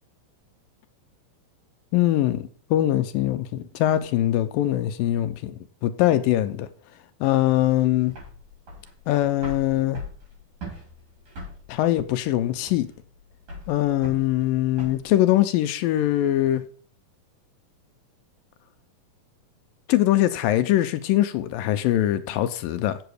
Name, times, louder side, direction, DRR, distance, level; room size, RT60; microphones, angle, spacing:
voice 1, 1.9-6.7 7.2-8.1 9.1-10.0 11.7-12.9 13.7-16.6 19.9-23.0, left 13 dB, 85° left, 2.4 m, -22 dB
sound 1, 7.6-15.1, left 1 dB, 60° right, 7.2 m, -41 dB
8.1 x 7.8 x 6.5 m
omnidirectional pair, 4.2 m